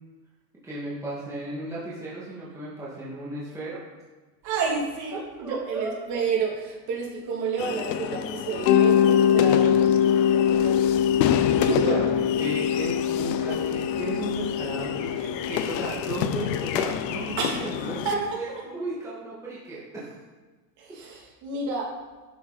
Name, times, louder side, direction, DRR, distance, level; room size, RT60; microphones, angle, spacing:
voice 1, 0.6-3.8 5.1-5.9 11.1-20.1, right 2 dB, 5° right, -8 dB, 2.1 m, -35 dB
voice 2, 4.4-10.9 11.6-12.1 17.4-17.6 18.0-18.4 20.8-21.9, right 5 dB, 35° right, -3 dB, 2.9 m, -30 dB
sound 1, 7.6-18.1, left 10 dB, 90° left, 0.8 m, -30 dB
Mallet percussion, 8.7-17.4, left 9 dB, 55° left, 0.6 m, -23 dB
sound 2, 12.7-18.3, left 7 dB, 25° left, 0.3 m, -43 dB
11.5 x 8.9 x 4.2 m, 1.3 s
supercardioid pair, 165°, 49 cm